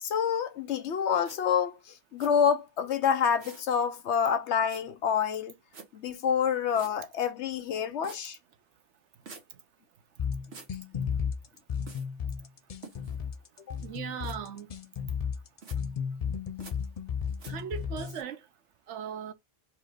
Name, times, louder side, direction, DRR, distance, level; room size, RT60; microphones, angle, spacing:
voice 1, 0.0-5.5 5.9-8.4 13.7-13.8, left 7 dB, 75° left, 1.0 m, -27 dB
sound 1, 1.2-1.4 2.2-2.3 3.4-3.7 4.7-4.8 5.7-5.9 6.7-6.9 8.0-8.2 9.2-9.4 10.5-10.7 11.9-12.1 12.8-13.2 14.2-14.4 15.6-15.8 16.6-16.7 17.4-17.5, right 4 dB, 65° right, 1.4 m, -47 dB
sound 2, 10.2-18.2, left 7 dB, 50° left, 0.4 m, -34 dB
voice 2, 13.8-14.7 17.5-18.4 18.9-19.3, right 8 dB, 90° right, 1.0 m, -38 dB
4.2 x 2.5 x 4.7 m
omnidirectional pair, 1.2 m